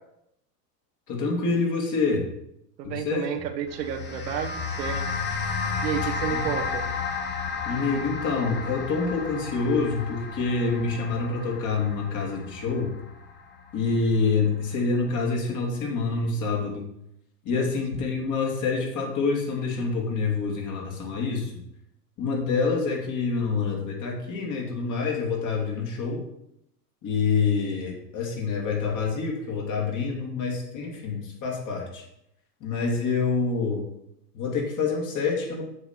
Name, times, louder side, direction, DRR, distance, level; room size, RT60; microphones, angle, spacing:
voice 1, 1.1-2.2 2.8-3.2 6.3-6.5 7.6-12.9 13.7-16.9 17.4-21.5 22.2-26.2 27.0-32.0 32.6-33.8 34.3-35.6, left 4 dB, 35° left, 0 dB, 2.7 m, -27 dB
voice 2, 2.8-5.0 5.8-6.8 17.5-17.7, right 9 dB, 75° right, 5 dB, 1.2 m, -31 dB
sound 1, 3.7-14.2, left 5 dB, 20° left, 1.1 m, -33 dB
8.1 x 6.3 x 4.5 m, 0.79 s
hypercardioid pair, 110°, 50 cm